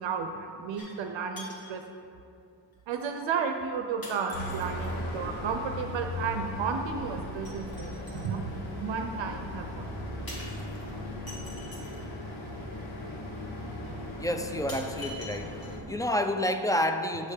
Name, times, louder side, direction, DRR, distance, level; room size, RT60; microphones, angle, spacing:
voice 1, 0.0-1.8 2.9-8.4 8.8-9.9, right 5 dB, 75° right, 4 dB, 0.6 m, -33 dB
sound 1, 0.8-1.1 1.4-1.8 2.7-2.8 4.0-4.9 7.5-8.3 10.3-12.0 13.2-13.3 13.8-13.9 14.7-15.9 16.3-16.4, left 1 dB, 50° left, 1.7 m, -45 dB
sound 2, 4.3-15.8, left 1 dB, 80° left, 1.2 m, -38 dB
voice 2, 14.2-15.6 15.9-17.3, left 1 dB, 10° left, 6 dB, 0.3 m, -29 dB
8.4 x 3.2 x 6.5 m, 2.5 s
cardioid pair, 75°, 46 cm